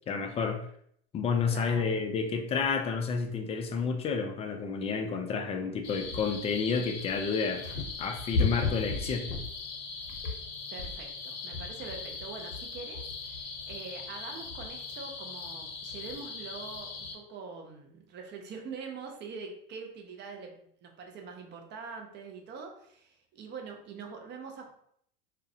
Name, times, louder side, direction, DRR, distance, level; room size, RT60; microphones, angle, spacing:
voice 1, 0.1-0.6 1.1-7.6 8.0-9.3, left 5 dB, 20° left, 5 dB, 0.3 m, -30 dB
voice 2, 1.5-2.0 10.7-24.7, right 5 dB, 35° right, 3 dB, 0.6 m, -44 dB
sound 1, 5.8-17.2, left 4 dB, 75° left, 0.7 m, -36 dB
2.3 x 2.1 x 2.6 m, 0.67 s
hypercardioid pair, 95°, 30 cm